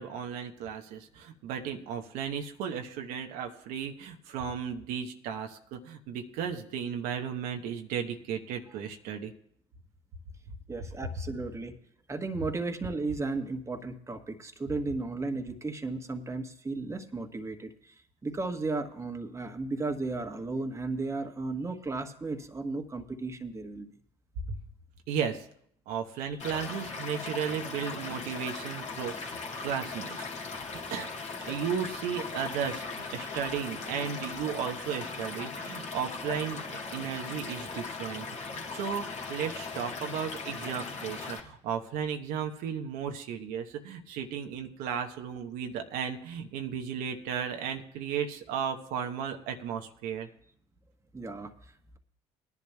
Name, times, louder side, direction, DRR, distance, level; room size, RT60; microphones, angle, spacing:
voice 1, 0.0-9.3 24.5-24.6 25.1-25.4 25.9-29.4 29.6-31.1 31.4-50.3, right 7 dB, 75° right, 4 dB, 1.0 m, -35 dB
voice 2, 10.7-11.7 12.1-23.9 26.2-26.4 51.1-52.0, right 3 dB, 20° right, 6 dB, 1.3 m, -35 dB
Stream / Liquid, 26.4-41.4, left 4 dB, 50° left, 1.9 m, -39 dB
20.0 x 11.0 x 2.3 m, 0.66 s
hypercardioid pair, 65°, 15 cm